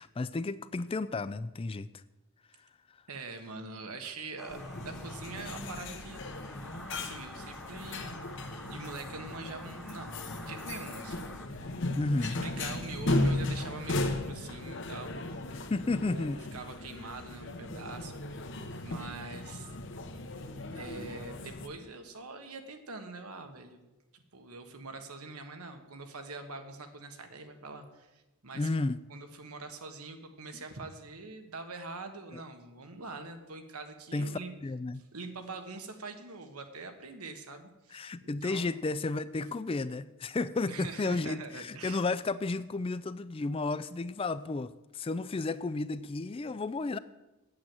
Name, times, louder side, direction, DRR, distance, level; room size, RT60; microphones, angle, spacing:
voice 1, 0.0-2.0 2.6-3.0 12.0-12.4 15.5-16.6 28.5-29.0 30.5-30.6 32.3-32.4 34.1-35.0 37.9-47.0, left 3 dB, 25° left, 15 dB, 0.3 m, -33 dB
voice 2, 3.1-6.2 6.9-8.3 8.6-11.4 12.2-15.2 16.0-18.2 18.8-19.8 20.7-23.8 24.1-28.7 29.1-34.5 35.1-38.7 40.7-42.0, right 3 dB, 85° right, 6 dB, 1.4 m, -44 dB
sound 1, 4.4-11.5, left 1 dB, ahead, 1.1 m, -49 dB
sound 2, 4.5-21.7, left 2 dB, 55° left, 1.0 m, -36 dB
8.8 x 8.6 x 7.8 m, 1.0 s
head